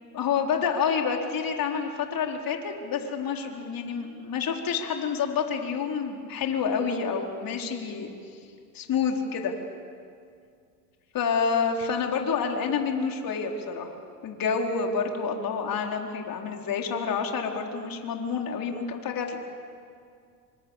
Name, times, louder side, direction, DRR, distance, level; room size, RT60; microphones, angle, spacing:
voice 1, 0.1-8.1 8.7-9.5 11.1-13.9 14.2-19.4, left 6 dB, 45° left, 2 dB, 4.3 m, -28 dB
27.0 x 25.5 x 7.4 m, 2.3 s
hypercardioid pair, 85°, 49 cm